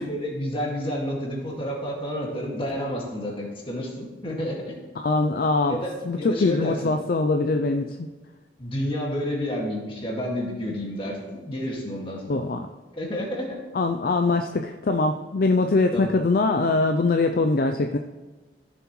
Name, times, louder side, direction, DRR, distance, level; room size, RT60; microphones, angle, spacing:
voice 1, 0.0-4.6 5.7-5.9 6.2-6.9 8.6-12.4 12.9-13.6 15.9-16.1, equal, 30° left, -2 dB, 2.0 m, -30 dB
voice 2, 5.0-5.8 6.1-8.1 12.3-12.7 13.7-18.0, left 3 dB, 50° left, 6 dB, 0.4 m, -22 dB
14.5 x 7.0 x 3.1 m, 1.3 s
head